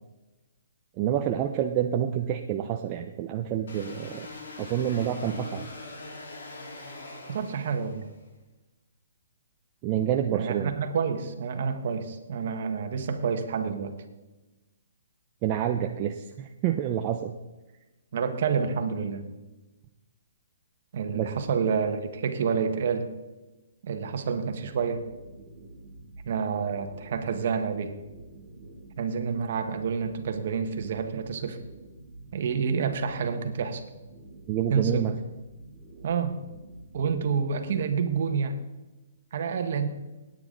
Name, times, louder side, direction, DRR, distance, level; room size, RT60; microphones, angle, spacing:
voice 1, 1.0-4.3 4.6-5.7 9.8-10.7 15.4-17.3 21.1-21.3 34.5-35.1, right 10 dB, 25° right, 4 dB, 0.5 m, -28 dB
sound 1, 3.7-8.2, left 3 dB, 75° left, 4.0 m, -42 dB
voice 2, 7.3-8.1 10.3-13.9 18.1-19.3 20.9-23.1 23.8-25.0 26.2-27.9 29.0-31.6 32.3-33.8 34.7-35.0 36.0-36.3 36.9-38.6 39.3-39.9, right 6 dB, 50° right, 7 dB, 1.5 m, -28 dB
sound 2, 24.6-38.4, right 2 dB, 5° right, 4.8 m, -48 dB
18.0 x 9.2 x 3.9 m, 1.1 s
hypercardioid pair, 170°, 0 cm